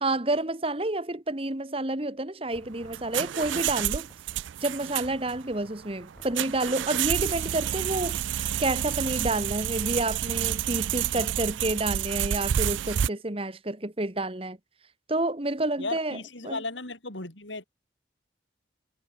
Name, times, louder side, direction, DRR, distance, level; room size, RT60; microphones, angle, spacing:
voice 1, 0.0-4.1 4.6-8.2 8.6-14.6 15.1-16.6, right 2 dB, 30° right, 1.6 m, -29 dB
Knock, 2.5-3.2 3.7-4.5 5.0-5.6 6.1-6.9, equal, 5° left, 5.2 m, -55 dB
sound 1, 2.6-13.1, right 10 dB, 85° right, 0.4 m, -29 dB
voice 2, 15.8-17.6, left 3 dB, 80° left, 5.8 m, -35 dB
head